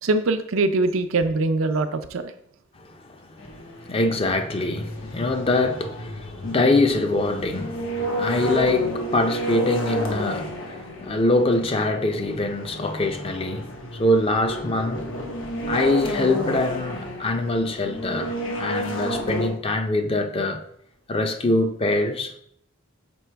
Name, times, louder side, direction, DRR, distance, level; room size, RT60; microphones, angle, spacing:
voice 1, 0.0-2.3, right 2 dB, 85° right, 0.5 m, -22 dB
voice 2, 2.8-3.4 3.8-15.1 15.7-20.6 21.1-22.4, left 2 dB, 30° left, 0.5 m, -24 dB
sound 1, 3.4-19.5, equal, 80° left, 1.0 m, -31 dB
6.1 x 4.6 x 3.4 m
head